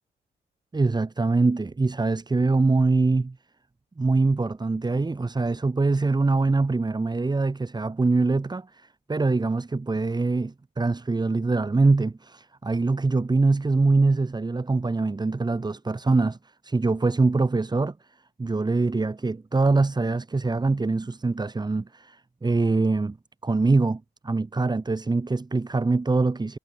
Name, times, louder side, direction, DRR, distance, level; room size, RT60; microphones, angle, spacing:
voice 1, 0.7-3.4 4.0-16.4 16.6-17.9 18.4-23.2 23.4-26.6, right 3 dB, 20° right, 2.8 m, -23 dB
cardioid pair, 90°, 20 cm